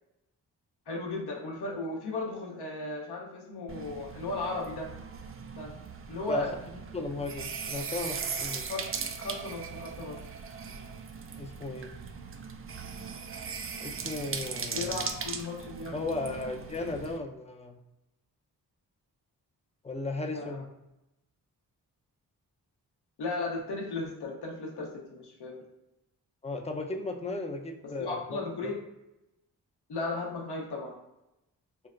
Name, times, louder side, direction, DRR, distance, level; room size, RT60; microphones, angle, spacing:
voice 1, 0.9-4.9 5.6-5.7 6.1-6.5 8.7-8.9 9.2-10.2 14.7-16.4 20.3-20.6 23.2-25.6 28.0-28.8 29.9-31.0, left 2 dB, 70° left, -2 dB, 0.9 m, -35 dB
sound 1, 3.7-17.2, right 6 dB, 35° right, 0.4 m, -39 dB
voice 2, 6.9-8.7 11.4-12.0 13.8-15.1 15.9-17.8 19.8-20.7 26.4-28.7, left 3 dB, 15° left, 2 dB, 0.5 m, -36 dB
4.5 x 2.1 x 2.4 m, 0.92 s
supercardioid pair, 40°, 42 cm